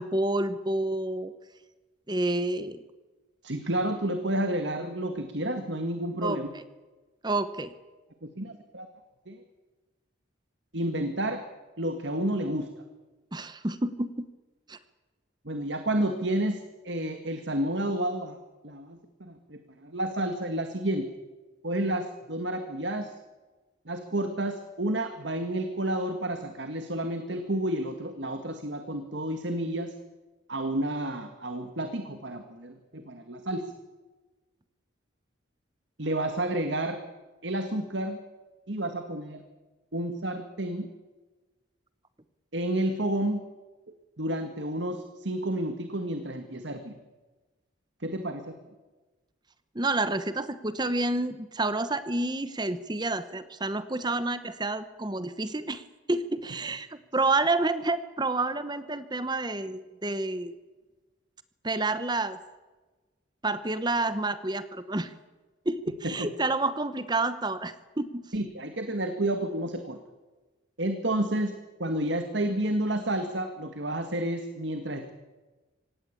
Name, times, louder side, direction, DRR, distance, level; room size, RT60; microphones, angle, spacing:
voice 1, 0.0-1.3 2.1-2.8 6.2-6.6 7.2-7.7 13.3-14.1 14.7-14.8 49.7-60.5 61.6-62.4 63.4-65.1 65.6-68.2, right 2 dB, 20° right, 12 dB, 1.0 m, -29 dB
voice 2, 3.4-6.5 8.2-8.9 9.3-9.4 10.7-11.4 11.8-12.7 15.5-16.6 16.8-18.4 18.6-21.1 21.6-23.1 23.9-29.9 30.5-33.6 36.0-37.0 37.4-38.2 38.7-39.4 39.9-40.9 42.5-43.4 44.2-46.9 48.0-48.5 66.0-66.3 68.3-70.0 70.8-71.5 71.8-75.1, right 1 dB, 65° right, 7 dB, 1.9 m, -30 dB
25.5 x 18.5 x 8.5 m, 1.2 s
head